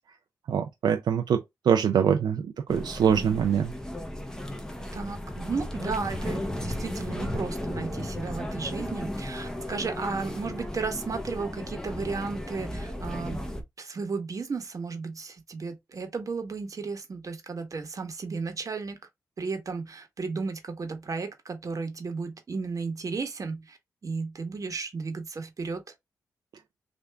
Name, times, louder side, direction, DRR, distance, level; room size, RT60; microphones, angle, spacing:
voice 1, 0.5-3.7, right 7 dB, 80° right, 0.4 m, -24 dB
sound 1, 2.7-13.6, left 1 dB, 10° left, 0.8 m, -35 dB
voice 2, 4.9-13.4 13.8-19.0 19.4-23.8 24.0-25.8, right 4 dB, 50° right, 1.0 m, -34 dB
3.3 x 2.5 x 3.3 m
cardioid pair, 65°, 7 cm